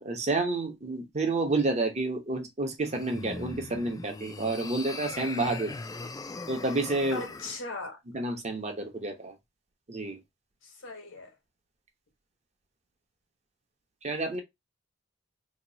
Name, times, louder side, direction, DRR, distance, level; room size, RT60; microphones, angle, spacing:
voice 1, 0.0-5.7 6.5-7.2 8.1-9.3 9.9-10.2 14.0-14.4, right 2 dB, 35° right, 0.8 m, -29 dB
sound 1, 2.8-7.6, left 3 dB, 20° left, 0.3 m, -40 dB
voice 2, 7.1-8.0 10.6-11.3, left 3 dB, 85° left, 1.2 m, -39 dB
2.9 x 2.3 x 3.9 m
head